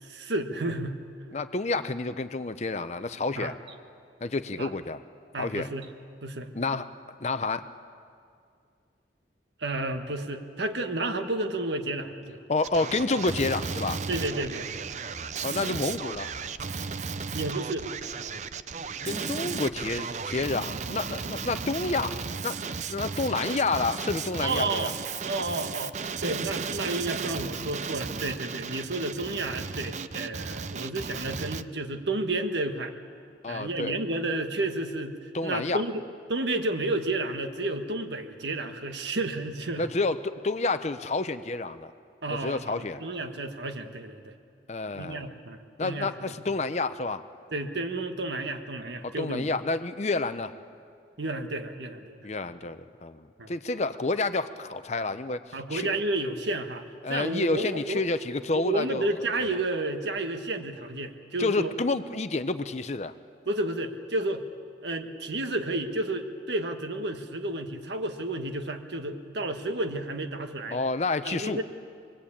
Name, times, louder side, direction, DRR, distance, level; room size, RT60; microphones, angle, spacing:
voice 1, 0.0-1.0 3.4-3.5 4.6-4.7 5.3-5.9 6.2-6.5 9.6-12.4 14.1-14.7 17.3-17.9 24.4-24.9 25.2-25.9 26.2-32.9 33.5-36.0 36.3-39.9 42.2-44.3 44.9-46.3 47.5-49.5 51.2-52.2 53.4-53.5 55.5-56.8 57.1-58.0 58.5-61.7 63.5-64.4 64.8-70.8 71.2-71.6, right 2 dB, 80° right, 6 dB, 1.4 m, -31 dB
voice 2, 1.3-3.5 4.2-5.0 5.4-5.7 6.5-6.9 7.2-7.7 12.5-14.0 15.4-16.3 19.0-22.2 22.4-24.9 33.4-34.0 35.3-35.8 39.8-41.9 42.4-43.0 44.7-45.3 45.8-47.2 49.0-50.5 52.2-55.9 57.0-59.1 61.4-63.1 70.7-71.6, left 3 dB, 40° left, 11 dB, 0.6 m, -29 dB
Male speech man speaking, 12.6-31.6, right 5 dB, 40° right, 0.5 m, -35 dB
25.5 x 21.0 x 8.6 m, 2.3 s
head